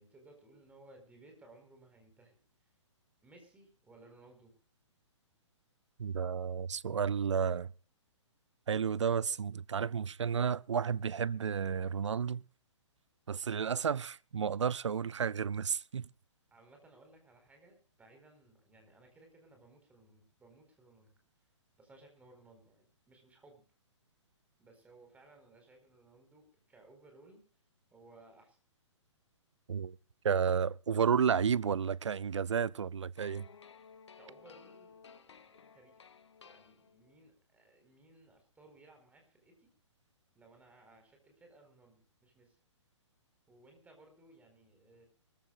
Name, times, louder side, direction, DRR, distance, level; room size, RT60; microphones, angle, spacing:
voice 1, 0.0-2.8 3.2-4.5 16.5-21.5 21.8-23.6 24.6-27.4 27.9-28.6 34.2-36.2 36.4-39.7 40.3-42.6 43.5-45.1, right 2 dB, 10° right, 4.4 m, -60 dB
voice 2, 6.0-7.7 8.7-12.4 13.3-16.1 29.7-30.0 30.2-33.5, right 7 dB, 70° right, 0.5 m, -32 dB
sound 1, 33.2-37.3, left 6 dB, 65° left, 1.5 m, -57 dB
24.0 x 14.5 x 2.4 m
figure-of-eight pair, 125°, 16 cm